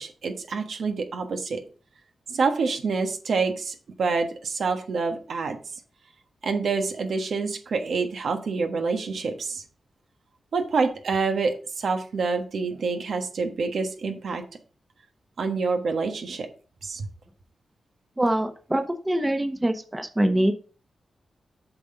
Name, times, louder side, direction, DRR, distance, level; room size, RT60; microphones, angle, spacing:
voice 1, 0.0-1.6 2.3-5.6 6.4-9.6 10.5-14.4 15.4-16.5 16.8-17.0, right 4 dB, 75° right, 5 dB, 1.3 m, -27 dB
voice 2, 18.2-20.5, right 1 dB, 15° right, 6 dB, 1.1 m, -24 dB
7.7 x 5.9 x 3.8 m, 0.38 s
cardioid pair, 85°, 0 cm